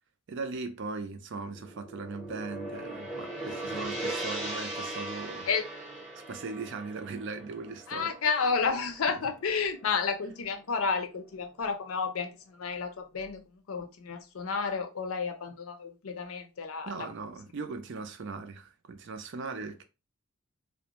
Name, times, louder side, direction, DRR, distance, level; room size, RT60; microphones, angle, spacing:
voice 1, 0.3-5.5 6.3-8.1 16.9-19.8, right 4 dB, 55° right, 0.4 m, -39 dB
Gong, 1.5-9.8, right 1 dB, 5° right, 0.8 m, -39 dB
voice 2, 7.9-17.1, left 5 dB, 70° left, 0.5 m, -31 dB
2.5 x 2.1 x 2.8 m
head